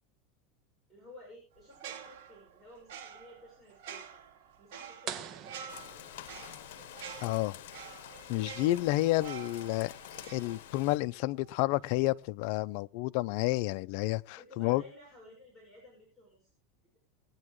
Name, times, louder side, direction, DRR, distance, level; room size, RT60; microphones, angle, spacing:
voice 1, 0.9-5.8 14.4-16.5, left 1 dB, 5° right, 5.6 m, -55 dB
sound 1, 1.7-11.1 11.4-11.6, right 8 dB, 70° right, 2.7 m, -48 dB
sound 2, 5.1-6.7, right 8 dB, 40° right, 1.1 m, -43 dB
Rain, 5.7-11.0, left 13 dB, 75° left, 0.9 m, -48 dB
voice 2, 7.2-7.6 8.3-9.9 10.3-14.8, left 18 dB, 55° left, 0.6 m, -30 dB
19.5 x 9.7 x 3.1 m
supercardioid pair, 155°, 0 cm